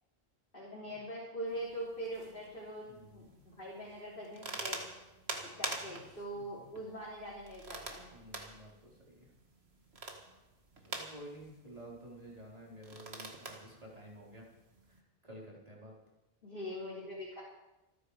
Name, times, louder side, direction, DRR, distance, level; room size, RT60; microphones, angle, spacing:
voice 1, 0.5-2.9 3.1-4.8 5.4-8.1 16.4-17.4, equal, 60° left, -6 dB, 3.8 m, -43 dB
sound 1, 1.5-15.0, right 3 dB, 90° right, 2.1 m, -47 dB
voice 2, 2.9-3.4 5.8-6.1 6.3-6.7 8.1-9.3 10.8-14.5 14.9-15.9, equal, 40° right, -3 dB, 4.1 m, -52 dB
27.0 x 9.5 x 4.9 m, 0.98 s
omnidirectional pair, 1.0 m